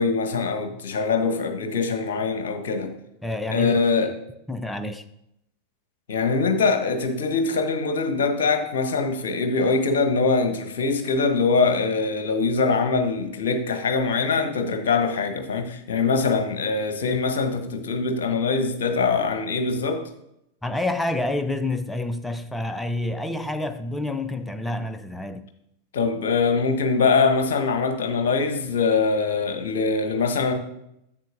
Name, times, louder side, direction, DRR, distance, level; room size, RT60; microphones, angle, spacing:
voice 1, 0.0-2.9 3.5-4.1 6.1-20.0 25.9-30.5, left 4 dB, 60° left, 1.1 m, -23 dB
voice 2, 3.2-4.0 4.5-5.0 20.6-25.5, left 2 dB, 5° left, 0.6 m, -28 dB
10.5 x 7.5 x 2.6 m
figure-of-eight pair, 90°, 0 cm